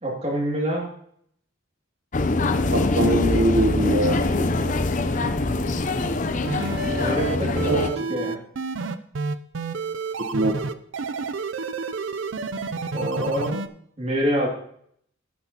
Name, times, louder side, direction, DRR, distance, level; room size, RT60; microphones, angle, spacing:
voice 1, 0.0-0.9 7.0-8.4 12.9-13.6 14.0-14.5, equal, 35° right, -1 dB, 2.6 m, -26 dB
sound 1, 2.1-7.9, left 2 dB, 40° left, 0.6 m, -23 dB
voice 2, 2.7-4.7 7.6-7.8 10.3-10.5, right 1 dB, 55° right, 2 dB, 1.0 m, -23 dB
sound 2, 6.5-13.7, right 4 dB, 70° right, 0.5 m, -30 dB
12.0 x 10.0 x 2.9 m, 0.68 s
head